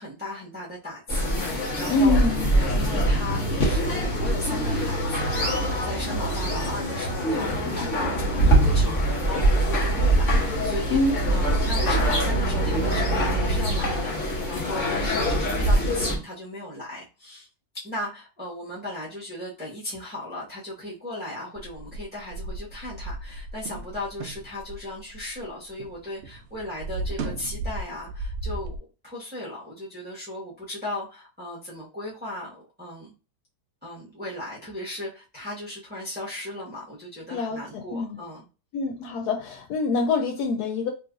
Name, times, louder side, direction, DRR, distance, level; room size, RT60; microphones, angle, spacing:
voice 1, 0.0-11.0 11.3-17.5 17.7-28.8 29.0-33.1 33.8-38.4, left 1 dB, 5° right, -7 dB, 1.2 m, -36 dB
sound 1, 1.1-16.2, right 1 dB, 50° left, 1.6 m, -23 dB
voice 2, 1.9-2.5 10.9-11.1 37.3-37.6 37.9-38.2 38.7-40.9, left 3 dB, 75° left, 2 dB, 1.1 m, -24 dB
sound 2, 21.6-26.0 26.2-28.8, right 2 dB, 80° right, 0.5 m, -35 dB
3.8 x 3.2 x 2.5 m, 0.32 s
omnidirectional pair, 1.8 m